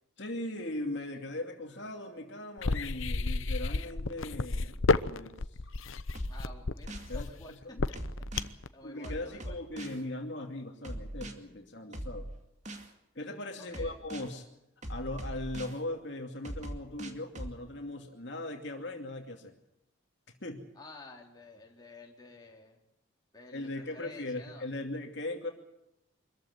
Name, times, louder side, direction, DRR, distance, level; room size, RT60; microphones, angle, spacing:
voice 1, 0.2-5.6 7.1-7.3 7.6-7.8 8.8-12.3 13.1-14.5 14.9-19.5 20.4-20.6 23.5-25.5, left 1 dB, 55° left, 2 dB, 2.6 m, -39 dB
sound 1, 2.6-8.7, left 3 dB, 75° left, 0.8 m, -30 dB
sound 2, 6.1-7.1 7.9-8.5 9.0-10.0 10.8-11.3 11.9-12.9 13.7-14.3 14.8-15.8 16.4-17.6, right 1 dB, 35° right, 2.3 m, -40 dB
voice 2, 6.3-8.0 8.7-9.6 13.6-14.0 20.8-22.8 23.3-24.7, left 2 dB, 20° left, -1 dB, 3.6 m, -50 dB
24.5 x 14.5 x 9.5 m, 0.87 s
head